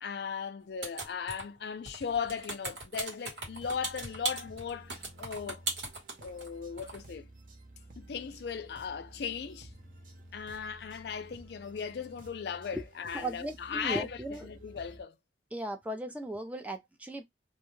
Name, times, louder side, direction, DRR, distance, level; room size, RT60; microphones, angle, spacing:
voice 1, 0.0-5.6 6.2-7.3 8.0-9.7 10.3-15.2, left 6 dB, 60° left, 0.4 m, -37 dB
sound 1, 0.8-1.6 1.8-6.5 6.8-7.0, right 3 dB, 75° right, 1.2 m, -38 dB
sound 2, 3.4-15.0, right 1 dB, 45° right, 0.6 m, -53 dB
voice 2, 13.1-14.5 15.5-17.3, right 1 dB, 10° right, 0.4 m, -37 dB
2.3 x 2.2 x 3.1 m
head